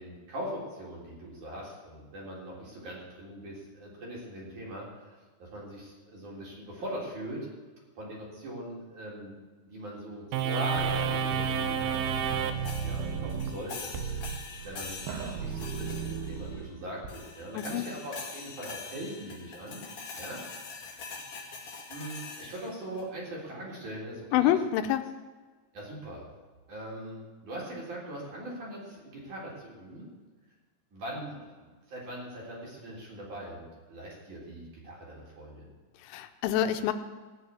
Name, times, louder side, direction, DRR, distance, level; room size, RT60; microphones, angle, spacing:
voice 1, 0.0-7.5 8.0-9.4 9.6-14.2 14.6-19.8 20.2-20.4 20.9-21.1 21.9-24.6 25.7-26.3 26.7-30.0 30.9-35.7, right 1 dB, 40° right, -4 dB, 4.7 m, -41 dB
sound 1, 10.3-17.1, right 6 dB, 75° right, 2.3 m, -32 dB
sound 2, 12.6-16.7 17.1-23.0, left 4 dB, 45° left, 2.1 m, -44 dB
voice 2, 24.3-25.0 36.0-36.9, left 11 dB, 85° left, 8 dB, 3.1 m, -26 dB
16.5 x 6.5 x 9.6 m, 1.3 s
omnidirectional pair, 5.6 m